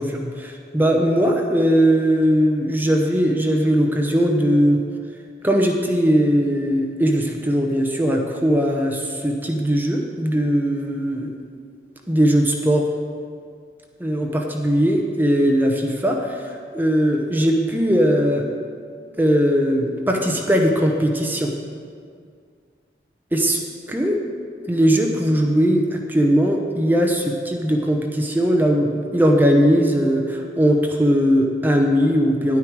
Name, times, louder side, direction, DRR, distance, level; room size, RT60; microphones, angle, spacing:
voice 1, 0.0-4.8 5.4-11.3 12.1-12.9 14.0-18.4 19.2-21.5 23.3-23.6 23.9-24.2 24.7-32.6, equal, 10° right, 1 dB, 0.7 m, -19 dB
10.5 x 9.5 x 4.6 m, 2.1 s
head